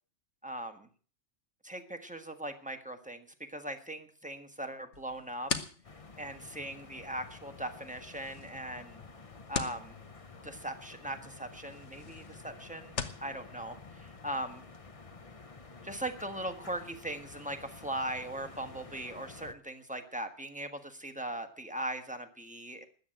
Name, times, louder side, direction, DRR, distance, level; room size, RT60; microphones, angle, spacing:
voice 1, 0.4-0.9 1.6-5.5 6.2-9.0 9.5-9.9 10.4-14.6 15.8-22.8, right 1 dB, 5° right, 6 dB, 1.5 m, -39 dB
sound 1, 4.9-13.3, left 6 dB, 70° left, 1.5 m, -43 dB
sound 2, 5.8-19.5, left 4 dB, 30° left, 0.8 m, -51 dB
13.5 x 8.5 x 9.1 m, 0.43 s
omnidirectional pair, 1.2 m